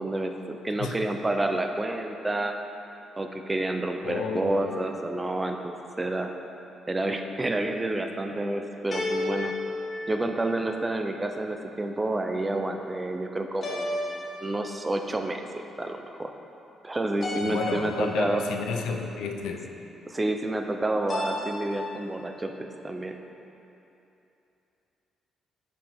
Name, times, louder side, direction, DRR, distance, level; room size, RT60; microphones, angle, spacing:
voice 1, 0.0-2.6 3.2-6.3 6.9-9.5 10.1-15.4 15.8-16.3 16.8-18.4 20.1-23.2, right 2 dB, 20° right, 5 dB, 0.5 m, -29 dB
voice 2, 4.0-4.6 17.4-19.7, left 5 dB, 85° left, 3 dB, 0.5 m, -31 dB
sound 1, 4.5-5.2 8.9-10.9 13.6-15.0 17.2-18.4 21.1-22.1, left 2 dB, 45° left, 1.1 m, -34 dB
7.3 x 5.2 x 3.5 m, 2.9 s
cardioid pair, 90°, 0 cm